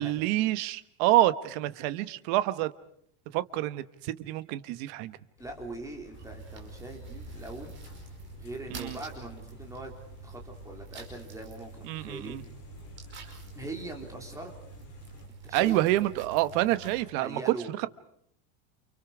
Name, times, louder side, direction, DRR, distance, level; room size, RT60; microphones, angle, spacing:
voice 1, 0.0-2.7 3.3-5.2 8.7-9.0 11.9-12.4 15.5-17.5, right 15 dB, 45° right, 13 dB, 1.2 m, -27 dB
sound 1, 5.4-15.3, left 7 dB, 30° left, 3.3 m, -53 dB
voice 2, 5.4-7.7 8.4-9.9 10.2-12.4 13.5-14.6 15.4-16.0 16.5-16.7 17.2-17.7, right 2 dB, 5° right, 2 dB, 3.4 m, -41 dB
sound 2, 6.1-17.0, right 4 dB, 25° right, 5.4 m, -46 dB
29.5 x 29.0 x 4.9 m, 0.70 s
supercardioid pair, 175°, 46 cm